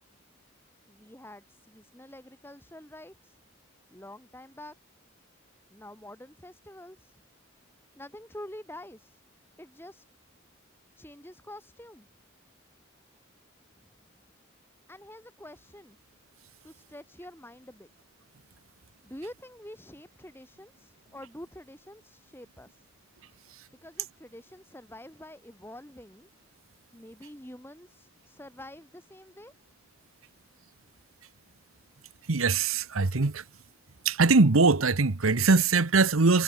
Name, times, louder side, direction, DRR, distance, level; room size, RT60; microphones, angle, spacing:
voice 1, 0.9-3.4 3.9-4.7 5.7-7.2 8.0-9.2 9.6-10.0 10.9-12.1 13.8-13.9 14.9-16.0 16.6-17.9 19.0-22.9 23.8-26.3 26.9-29.5, left 1 dB, 10° left, 3.2 m, -47 dB
voice 2, 32.3-33.4 34.0-36.4, right 3 dB, 90° right, 1.1 m, -22 dB
head